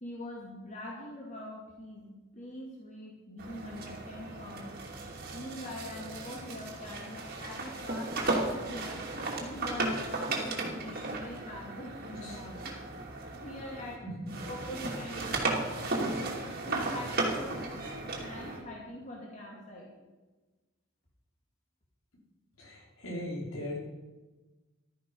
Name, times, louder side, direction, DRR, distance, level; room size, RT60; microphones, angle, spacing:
voice 1, 0.0-4.8 5.3-9.0 9.4-12.7 13.3-14.0 14.5-16.2 16.6-19.9, left 1 dB, 35° left, -3 dB, 2.6 m, -44 dB
sound 1, 3.4-14.0 14.3-18.6, right 2 dB, 45° right, 2.7 m, -35 dB
voice 2, 14.0-14.3 22.6-23.8, left 1 dB, 75° left, -4 dB, 5.4 m, -38 dB
15.0 x 13.0 x 5.5 m, 1.2 s
head